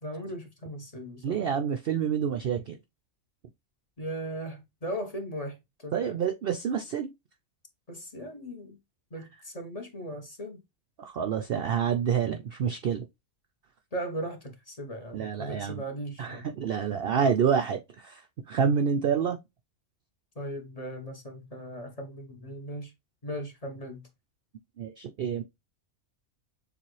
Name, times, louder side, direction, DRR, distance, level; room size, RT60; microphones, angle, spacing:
voice 1, 0.0-1.5 4.0-6.2 7.9-8.8 9.1-10.6 13.9-16.5 20.3-22.9 23.2-24.1, right 1 dB, 30° left, 1.0 m, -38 dB
voice 2, 1.2-2.8 5.9-7.1 11.0-13.1 15.1-15.8 16.2-18.2 18.5-19.4 24.8-25.4, right 7 dB, 65° right, 0.6 m, -28 dB
6.9 x 2.5 x 3.1 m
omnidirectional pair, 1.4 m